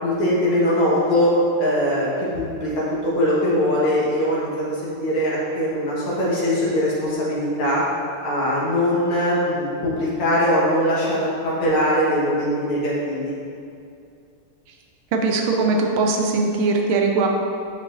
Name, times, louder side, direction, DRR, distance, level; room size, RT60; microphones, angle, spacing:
voice 1, 0.0-1.3 1.6-2.1 2.3-7.8 8.2-13.3, equal, 85° left, -7 dB, 2.5 m, -21 dB
voice 2, 15.1-17.3, right 3 dB, 80° right, 1 dB, 1.6 m, -20 dB
8.3 x 6.0 x 2.7 m, 2.5 s
omnidirectional pair, 2.3 m